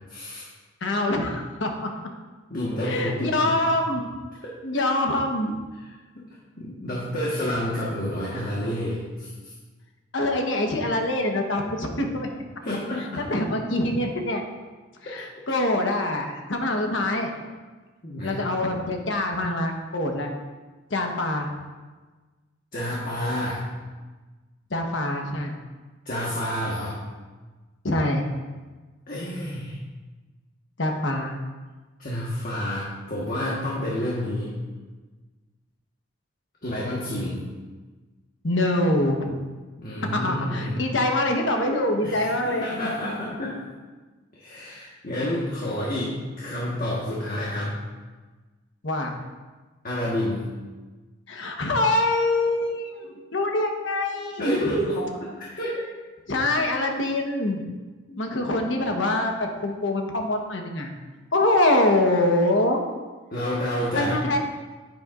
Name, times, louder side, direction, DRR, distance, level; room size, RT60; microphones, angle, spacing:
voice 1, 0.1-0.4 2.5-3.8 4.7-4.9 6.1-6.2 6.6-9.5 12.6-13.3 15.1-15.3 18.0-18.4 22.7-23.6 26.0-26.9 29.1-29.8 32.0-34.5 36.6-37.4 39.8-40.9 42.0-43.7 44.3-47.7 49.8-50.5 54.4-55.8 58.1-58.2 63.3-64.2, equal, 45° left, -6 dB, 1.5 m, -29 dB
voice 2, 0.8-1.9 2.8-4.1 4.6-5.6 10.1-12.3 13.2-14.4 15.0-17.3 18.2-20.3 20.9-21.5 24.7-25.5 27.8-28.2 30.8-31.4 38.4-39.4 40.1-42.7 48.8-49.1 51.3-54.8 56.3-57.6 58.2-60.9 61.3-62.8 63.9-64.4, left 1 dB, 60° left, 2 dB, 1.2 m, -24 dB
10.0 x 9.4 x 2.5 m, 1.3 s
head